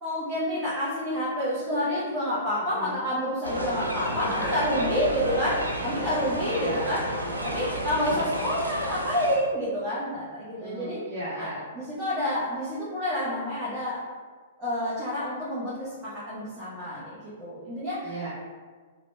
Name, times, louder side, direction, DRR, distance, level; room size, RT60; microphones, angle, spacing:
voice 1, 0.0-7.0 7.4-11.0 11.4-11.5 11.7-14.0 14.6-18.1, equal, 20° right, -10 dB, 0.7 m, -29 dB
voice 2, 2.6-3.0 4.2-4.7 6.5-6.9 10.5-11.6 18.0-18.3, right 1 dB, 55° right, -9 dB, 0.7 m, -36 dB
sound 1, 3.4-9.4, right 1 dB, 90° right, 0.4 m, -31 dB
2.9 x 2.0 x 2.5 m, 1.5 s
figure-of-eight pair, 110°, 0 cm